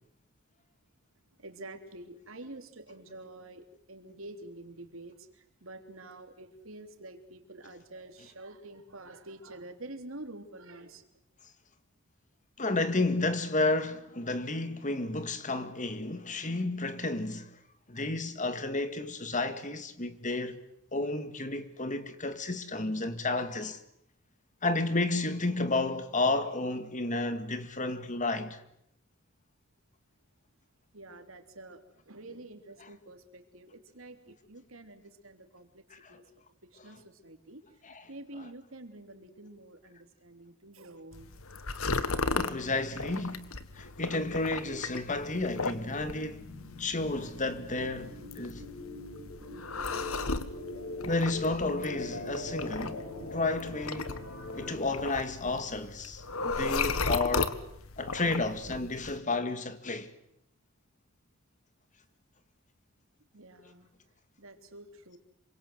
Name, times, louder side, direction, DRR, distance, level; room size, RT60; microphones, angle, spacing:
voice 1, 1.4-11.0 30.9-35.8 36.1-36.2 36.6-41.3 63.3-63.9 64.4-65.2, right 2 dB, 70° right, 3.4 m, -48 dB
voice 2, 12.6-17.6 17.9-20.6 20.9-23.8 24.6-28.6 35.9-36.2 37.8-38.0 42.3-46.5 46.8-48.6 51.0-54.2 54.5-57.6 58.0-60.1, left 2 dB, 35° left, 2.1 m, -32 dB
sound 1, 41.1-59.2, left 4 dB, 80° left, 1.7 m, -36 dB
sound 2, 45.5-54.8, left 2 dB, 65° left, 7.1 m, -42 dB
27.5 x 24.5 x 8.0 m
head